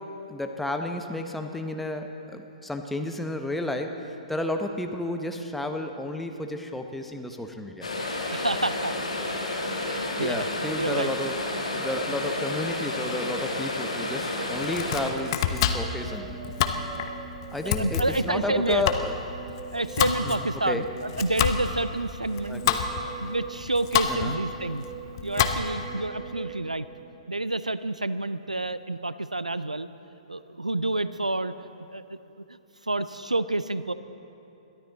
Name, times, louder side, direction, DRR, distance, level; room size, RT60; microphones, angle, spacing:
voice 1, 0.0-7.9 10.2-11.3 11.7-16.4 17.5-19.1 20.2-20.9 22.5-22.8 24.1-24.4, left 1 dB, 5° left, 5 dB, 0.9 m, -32 dB
sound 1, 7.8-15.1, left 2 dB, 70° left, 2.3 m, -31 dB
voice 2, 8.3-8.9 9.7-10.5 10.8-11.1 17.6-18.8 19.7-22.6 23.0-24.8 25.2-26.9 27.3-29.9 30.3-31.5 31.9-32.2 32.5-32.6 32.8-33.9, right 2 dB, 85° right, 14 dB, 0.5 m, -29 dB
Domestic sounds home sounds, 14.5-25.9, left 8 dB, 40° left, 0.9 m, -29 dB
sound 2, 15.5-27.5, right 6 dB, 20° right, 1.1 m, -42 dB
22.0 x 14.0 x 4.1 m, 2.9 s
figure-of-eight pair, 120°, 4 cm